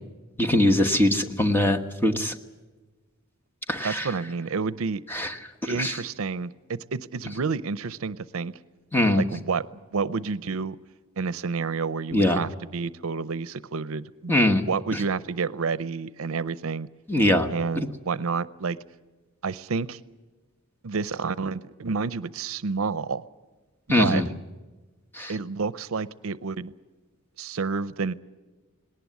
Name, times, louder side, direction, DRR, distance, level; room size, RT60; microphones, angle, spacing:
voice 1, 0.4-2.3 3.7-4.1 5.1-5.3 5.6-6.0 8.9-9.2 12.1-12.4 14.3-14.7 14.9-15.0 17.1-17.5 17.7-17.9 23.9-24.3 25.1-25.3, left 1 dB, 10° left, 4 dB, 1.2 m, -22 dB
voice 2, 3.8-5.0 5.7-8.5 9.2-9.7 9.9-10.8 11.2-14.3 14.7-16.9 17.5-18.8 19.4-20.0 20.8-23.2 24.0-24.2 25.3-26.7 27.4-28.1, right 4 dB, 75° right, 17 dB, 0.6 m, -29 dB
19.0 x 18.5 x 9.4 m, 1.3 s
head